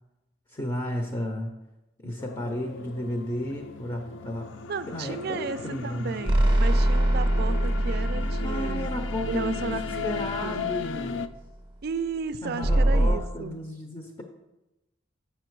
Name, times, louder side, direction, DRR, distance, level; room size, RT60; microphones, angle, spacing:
voice 1, 0.5-1.5 2.0-4.5 4.9-6.2 8.2-11.3 12.4-14.2, left 1 dB, 25° left, 3 dB, 0.6 m, -33 dB
sound 1, 2.2-11.3, left 6 dB, 65° left, 0.4 m, -37 dB
voice 2, 4.7-8.9 9.3-10.6 11.8-13.6, right 5 dB, 55° right, 14 dB, 0.4 m, -34 dB
sound 2, 6.3-10.8 12.6-13.2, right 1 dB, 25° right, 0.7 m, -24 dB
7.6 x 5.6 x 4.6 m, 0.98 s
head